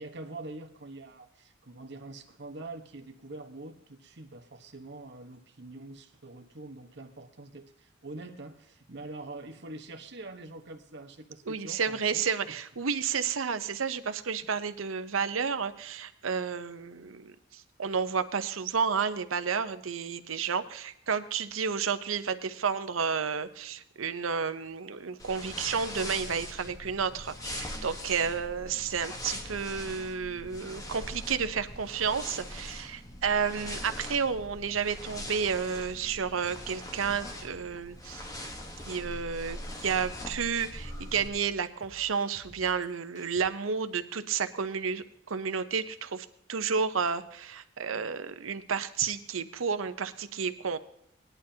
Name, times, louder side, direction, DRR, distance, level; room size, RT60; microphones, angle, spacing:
voice 1, 0.0-12.6 14.4-14.5 28.6-28.9 47.9-48.0, right 2 dB, 60° right, 5 dB, 1.2 m, -45 dB
voice 2, 11.5-38.3 38.8-50.8, right 6 dB, 90° right, 11 dB, 0.8 m, -31 dB
sound 1, 25.2-41.3, left 1 dB, 15° left, 1.2 m, -42 dB
sound 2, 26.2-43.4, left 1 dB, 35° left, 2.4 m, -55 dB
19.0 x 11.0 x 2.8 m, 0.73 s
head